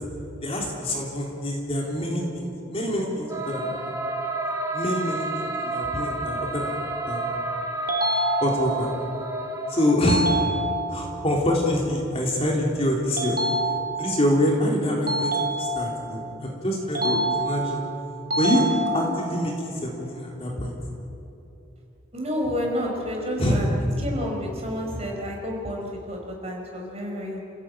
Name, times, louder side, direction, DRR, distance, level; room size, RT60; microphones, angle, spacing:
voice 1, 0.4-3.8 4.7-7.3 8.4-8.9 9.7-10.3 10.9-13.4 14.0-17.8 18.4-18.7 18.9-20.7 23.4-23.7, left 1 dB, 30° left, -2 dB, 3.5 m, -26 dB
sound 1, 3.3-9.9, right 2 dB, 15° right, 1.9 m, -30 dB
sound 2, 7.9-8.9 10.1-11.1 13.2-14.2 15.1-16.1 16.9-17.9 18.3-19.3, right 1 dB, 45° right, 3.2 m, -26 dB
voice 2, 22.1-23.7 24.0-27.4, equal, 30° right, -1 dB, 5.0 m, -30 dB
29.0 x 16.5 x 9.0 m, 2.9 s
head